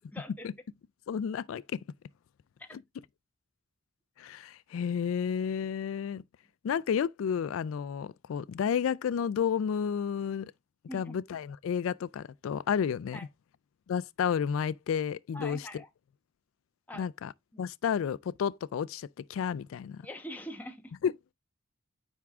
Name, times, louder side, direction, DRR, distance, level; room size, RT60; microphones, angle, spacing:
voice 1, 0.1-0.5 2.6-2.7 10.9-11.2 13.1-13.3 15.3-15.9 16.9-17.1 17.5-17.6 20.0-20.9, equal, 10° left, 1.0 m, -43 dB
voice 2, 1.1-1.8 4.2-6.2 6.6-10.5 10.9-13.2 13.9-15.6 17.0-17.3 17.6-20.0 21.0-21.1, left 7 dB, 90° left, 0.3 m, -31 dB
9.4 x 3.6 x 3.5 m
head